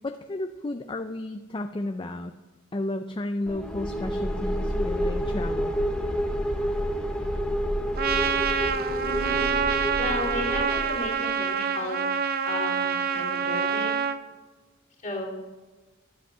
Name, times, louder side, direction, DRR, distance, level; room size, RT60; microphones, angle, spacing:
voice 1, 0.0-2.3 2.7-5.7, left 2 dB, 25° left, 7 dB, 0.4 m, -33 dB
sound 1, 3.5-11.2, equal, 5° left, 0.8 m, -29 dB
Trumpet, 8.0-14.2, right 6 dB, 45° right, 0.6 m, -26 dB
voice 2, 8.9-9.6 10.0-12.0 12.4-14.0 15.0-15.4, left 1 dB, 40° left, -1 dB, 2.7 m, -34 dB
11.0 x 8.2 x 5.5 m, 1.3 s
head